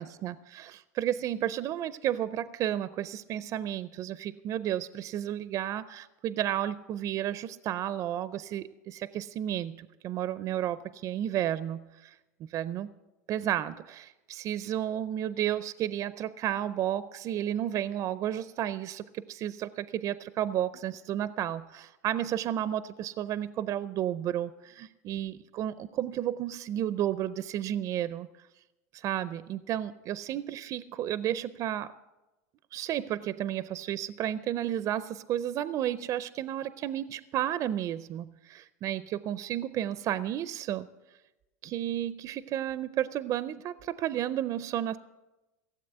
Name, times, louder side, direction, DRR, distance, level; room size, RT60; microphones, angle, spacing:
voice 1, 0.0-12.1 12.5-12.9 13.3-28.3 28.9-31.9 32.7-40.9 41.6-45.0, right 11 dB, 40° right, 16 dB, 0.4 m, -32 dB
16.5 x 7.6 x 7.8 m, 1.0 s
supercardioid pair, 115°, 9 cm